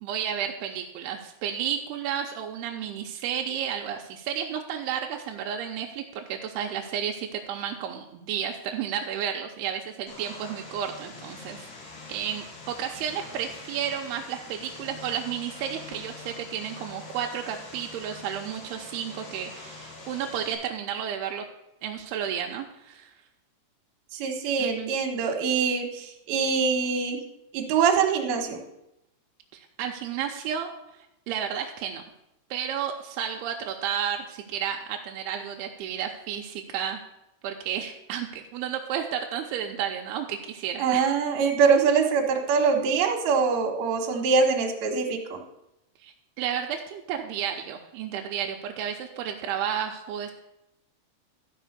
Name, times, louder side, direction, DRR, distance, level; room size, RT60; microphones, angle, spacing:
voice 1, 0.0-11.7 12.1-21.4 21.8-23.1 24.6-24.9 29.5-30.7 31.3-32.0 32.5-37.0 37.4-41.1 46.0-50.3, right 8 dB, 80° right, 2 dB, 2.4 m, -32 dB
Vehicle, 10.1-20.5, left 3 dB, 65° left, 4.5 m, -44 dB
voice 2, 24.1-27.2 27.5-28.6 40.8-45.4, right 5 dB, 65° right, 1 dB, 3.0 m, -24 dB
12.5 x 5.5 x 6.6 m, 0.87 s
omnidirectional pair, 5.3 m